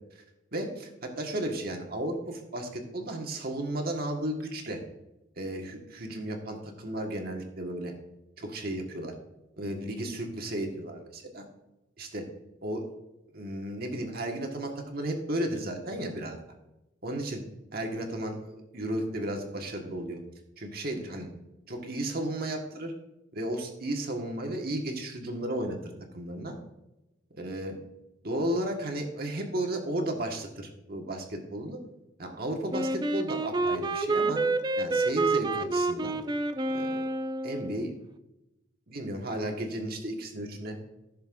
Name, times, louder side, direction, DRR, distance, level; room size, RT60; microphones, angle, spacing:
voice 1, 0.5-4.8 5.4-7.9 8.4-9.1 9.6-11.4 12.0-12.3 12.6-12.8 13.3-16.4 17.0-17.4 17.7-20.2 20.6-21.3 21.7-22.9 23.3-26.5 27.3-27.8 28.2-31.8 32.2-34.4 34.8-36.2 36.7-37.1 37.4-37.9 38.9-40.8, right 1 dB, 50° right, 2 dB, 1.6 m, -34 dB
Wind instrument woodwind instrument, 32.7-37.8, right 2 dB, 20° right, 0.4 m, -28 dB
14.5 x 6.6 x 2.6 m, 0.95 s
head